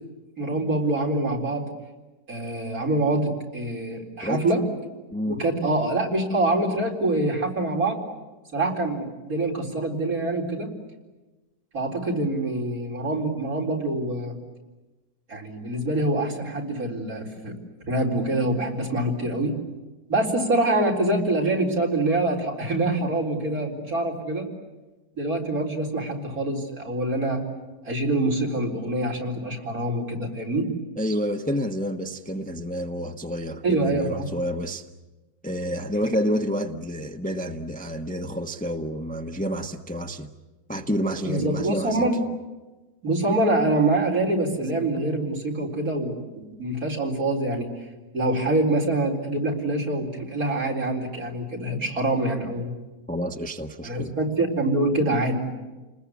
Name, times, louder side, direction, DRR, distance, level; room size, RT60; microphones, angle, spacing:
voice 1, 0.4-1.7 2.3-4.6 5.3-8.0 8.5-10.7 11.7-14.4 15.3-17.5 17.9-19.6 20.1-24.5 25.2-27.4 27.8-30.6 33.6-34.3 41.3-42.2 43.0-47.7 48.1-52.7 53.8-55.4, right 2 dB, 65° right, -1 dB, 4.6 m, -25 dB
voice 2, 31.0-34.8 35.4-40.3 40.7-42.1 53.1-54.1, equal, 5° left, 4 dB, 1.0 m, -29 dB
29.5 x 20.5 x 8.4 m, 1.2 s
omnidirectional pair, 1.6 m